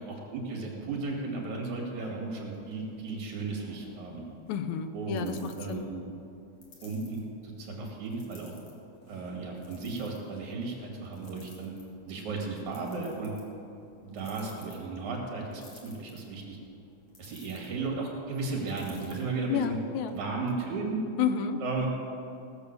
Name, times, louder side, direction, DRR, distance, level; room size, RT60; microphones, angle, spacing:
voice 1, 0.1-4.2 4.9-6.1 6.8-8.5 9.1-11.7 12.0-13.3 14.0-16.6 17.2-19.8 20.1-21.0 21.6-21.9, right 3 dB, 80° right, 0 dB, 3.7 m, -35 dB
sound 1, 2.6-20.1, left 3 dB, 55° left, 2.7 m, -58 dB
voice 2, 4.5-5.9 19.5-20.2 21.2-21.6, left 8 dB, 80° left, 9 dB, 2.1 m, -31 dB
18.0 x 7.2 x 6.8 m, 2.7 s
omnidirectional pair, 3.4 m